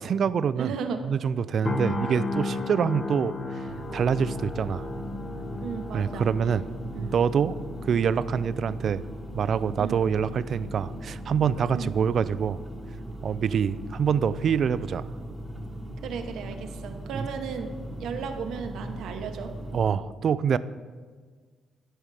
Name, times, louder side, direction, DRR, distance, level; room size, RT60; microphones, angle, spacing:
voice 1, 0.0-0.7 1.0-3.7 3.9-4.9 5.9-6.6 7.0-9.0 9.3-12.6 13.2-15.1 17.1-17.3 19.7-20.6, right 7 dB, 55° right, 16 dB, 0.3 m, -26 dB
voice 2, 0.6-1.0 1.8-2.1 5.6-6.3 6.9-7.2 9.8-10.0 11.7-11.9 16.0-17.7 18.0-19.5, right 6 dB, 80° right, 6 dB, 1.0 m, -35 dB
sound 1, 1.6-15.6 16.0-16.2, left 3 dB, 35° left, 0.9 m, -37 dB
sound 2, 3.7-19.9, right 1 dB, 5° right, 1.2 m, -39 dB
12.5 x 5.6 x 4.9 m, 1.5 s
cardioid pair, 90°, 0 cm